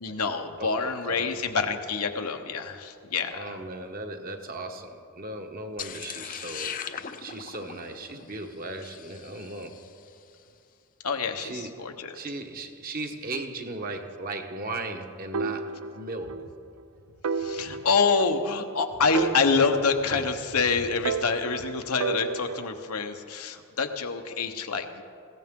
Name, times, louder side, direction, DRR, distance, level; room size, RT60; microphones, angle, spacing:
voice 1, 0.0-3.6 11.0-12.2 17.4-25.0, left 4 dB, 90° left, 5 dB, 1.1 m, -27 dB
voice 2, 0.6-1.4 3.3-6.8 7.2-9.8 11.4-16.5, right 2 dB, 40° right, 4 dB, 1.1 m, -37 dB
sound 1, 5.8-10.1, left 8 dB, 40° left, 0.6 m, -39 dB
sound 2, 15.3-16.5 16.8-16.9 17.2-18.8 19.1-20.6 21.0-22.9, right 5 dB, 90° right, 0.4 m, -33 dB
20.5 x 16.5 x 3.8 m, 2.5 s
head